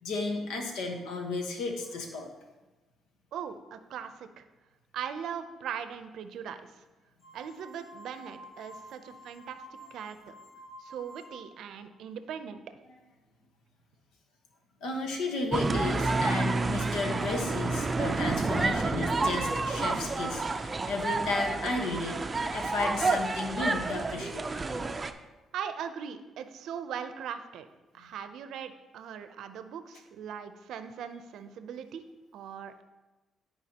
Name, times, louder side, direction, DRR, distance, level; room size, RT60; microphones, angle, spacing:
voice 1, 0.0-2.3 14.8-22.2 22.5-24.5, left 3 dB, 90° left, 2 dB, 1.2 m, -33 dB
voice 2, 3.3-4.4 4.9-6.7 7.3-9.6 9.9-10.3 10.8-12.6 25.5-27.7 27.9-32.0 32.3-32.8, right 8 dB, 80° right, 10 dB, 0.6 m, -40 dB
sound 1, 7.2-11.6, right 1 dB, 50° left, 1.4 m, -50 dB
sound 2, 15.5-25.1, right 3 dB, 30° right, 0.5 m, -29 dB
13.0 x 4.6 x 2.9 m, 1.1 s
cardioid pair, 90°, 0 cm